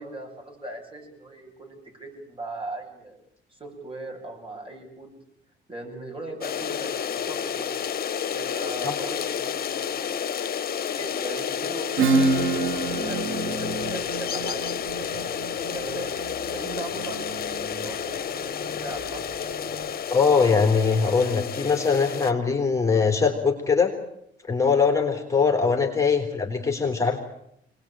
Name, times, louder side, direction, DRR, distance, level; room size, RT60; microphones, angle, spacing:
voice 1, 0.0-3.2 3.5-5.1 5.7-7.8 8.3-10.1 10.9-15.4 15.7-18.5 18.8-19.2 25.6-25.7, right 2 dB, 25° right, 2 dB, 7.9 m, -39 dB
sound 1, 6.4-22.3, left 8 dB, 50° left, 1.2 m, -30 dB
Acoustic guitar / Strum, 12.0-17.3, right 4 dB, 85° right, 1.7 m, -27 dB
sound 2, 12.2-19.9, right 2 dB, 65° right, 6.7 m, -41 dB
voice 2, 20.1-23.9 24.5-27.2, left 5 dB, 15° left, 3 dB, 3.6 m, -22 dB
24.5 x 20.0 x 8.9 m, 0.76 s
cardioid pair, 90°, 20 cm